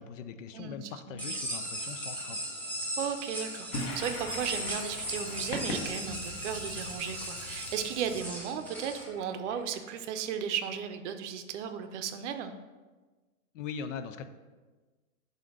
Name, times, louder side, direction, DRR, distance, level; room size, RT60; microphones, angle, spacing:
voice 1, 0.0-2.5 13.5-14.3, left 6 dB, 60° left, 11 dB, 0.5 m, -41 dB
voice 2, 1.1-1.6 3.0-12.5, right 8 dB, 55° right, 8 dB, 0.6 m, -35 dB
sound 1, 1.2-9.0, equal, 5° left, 0.5 m, -38 dB
Toilet flush, 3.7-10.3, left 1 dB, 40° left, 1.0 m, -41 dB
7.0 x 2.8 x 4.9 m, 1.3 s
hypercardioid pair, 140°, 43 cm